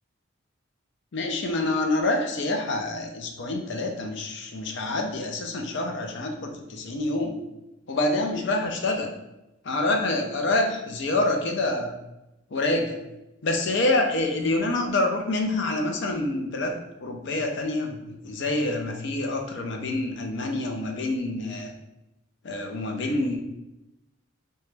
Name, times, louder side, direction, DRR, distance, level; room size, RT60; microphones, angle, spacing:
voice 1, 1.1-7.4 7.9-9.1 9.7-11.9 12.5-13.0 13.4-21.7 22.4-23.4, left 2 dB, 55° left, 3 dB, 0.4 m, -27 dB
2.9 x 2.2 x 3.2 m, 0.93 s
head